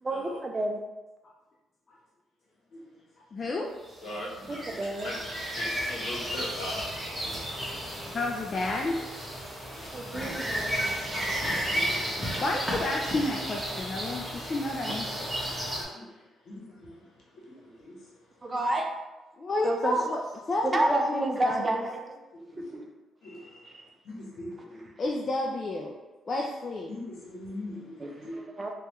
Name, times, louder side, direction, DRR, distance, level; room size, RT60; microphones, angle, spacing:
voice 1, 0.0-0.8 4.5-5.1 9.9-10.9 18.4-18.9 19.6-20.0 20.6-22.2 22.6-22.8 23.7-23.8 28.0-28.1 28.6-28.7, right 2 dB, 30° right, 3 dB, 0.4 m, -30 dB
voice 2, 3.3-3.7 7.9-9.0 12.4-15.3 19.4-21.9 25.0-25.9 26.3-26.9, left 2 dB, 40° left, 0 dB, 0.3 m, -31 dB
sound 1, 3.9-15.8, equal, 5° right, 1.0 m, -33 dB
voice 3, 4.0-5.1 5.5-7.4 9.9-10.3 11.4-12.3 15.9-16.1 16.4-17.1 17.3-18.1 18.5-18.6 22.5-22.8 23.2-23.8 24.0-24.8 25.2-25.3 26.9-28.4, left 1 dB, 70° left, -4 dB, 0.9 m, -41 dB
3.4 x 2.3 x 2.9 m, 1.1 s
cardioid pair, 90°, 0 cm